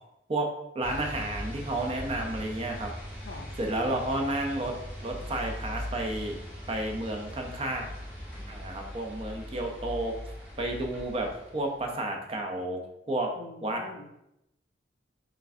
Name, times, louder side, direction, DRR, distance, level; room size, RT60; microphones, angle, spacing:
voice 1, 0.7-2.9 3.6-4.7 5.0-6.3 6.7-7.9 8.5-10.1 10.6-12.8 13.1-13.3 13.6-13.8, right 1 dB, 35° right, 2 dB, 0.6 m, -31 dB
sound 1, 0.8-11.9, equal, 10° right, 1.4 m, -40 dB
voice 2, 13.4-14.1, left 3 dB, 70° left, 4 dB, 0.5 m, -45 dB
4.8 x 3.2 x 2.6 m, 0.83 s
head